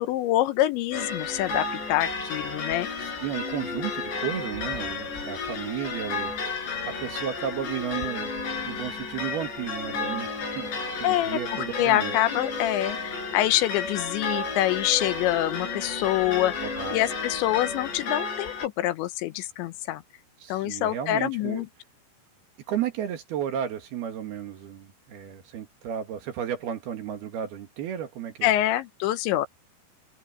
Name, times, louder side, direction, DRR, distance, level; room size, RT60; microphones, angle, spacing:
voice 1, 0.0-2.9 11.0-20.0 20.5-21.7 28.4-29.5, left 14 dB, 80° left, 3.2 m, -26 dB
sound 1, 0.9-18.7, left 4 dB, 65° left, 9.2 m, -32 dB
voice 2, 3.0-8.3 8.6-10.7 11.0-12.1 16.6-17.0 20.4-21.6 22.7-28.5, right 9 dB, 65° right, 3.4 m, -33 dB
omnidirectional pair, 5.4 m